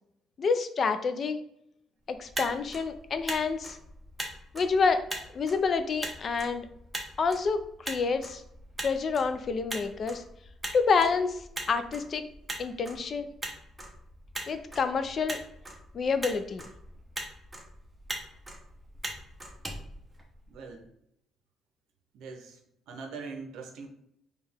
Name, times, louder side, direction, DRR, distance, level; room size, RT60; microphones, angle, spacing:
voice 1, 0.4-1.4 2.1-3.8 4.5-5.0 5.3-6.7 7.2-8.4 8.8-10.2 10.7-12.2 12.6-13.3 14.5-15.4 15.9-16.6, left 5 dB, 40° left, 10 dB, 0.4 m, -28 dB
Motor vehicle (road), 2.1-20.7, right 1 dB, 10° right, 0.7 m, -41 dB
voice 2, 20.5-20.9 22.1-22.6 22.9-23.9, right 4 dB, 85° right, 4 dB, 0.6 m, -42 dB
4.5 x 2.3 x 3.4 m, 0.75 s
cardioid pair, 135°, 0 cm